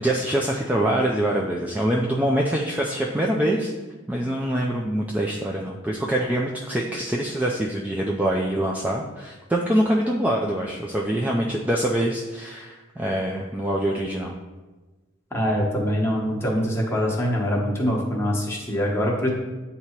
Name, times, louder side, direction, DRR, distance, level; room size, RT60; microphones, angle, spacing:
voice 1, 0.0-3.7 4.1-14.3, right 1 dB, 10° right, -2 dB, 0.4 m, -24 dB
voice 2, 15.3-19.3, equal, 15° left, -3 dB, 1.1 m, -24 dB
8.2 x 2.8 x 4.4 m, 1.2 s
head